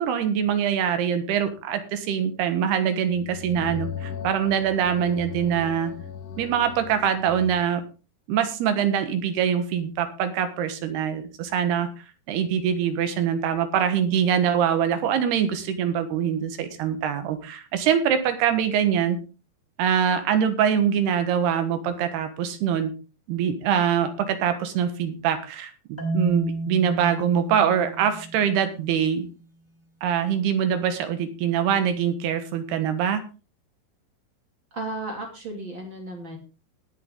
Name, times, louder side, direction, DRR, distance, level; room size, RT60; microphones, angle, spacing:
voice 1, 0.0-5.9 6.4-7.8 8.3-19.2 19.8-22.9 23.3-29.3 30.0-33.2, right 8 dB, 80° right, 9 dB, 3.4 m, -24 dB
sound 1, 3.0-7.7, left 7 dB, 60° left, 1.6 m, -37 dB
Marimba xylophone, 26.0-29.0, right 1 dB, 5° left, 3.8 m, -32 dB
voice 2, 34.7-36.4, right 2 dB, 30° right, 1 dB, 3.1 m, -34 dB
19.5 x 6.9 x 3.8 m, 0.33 s
omnidirectional pair, 4.6 m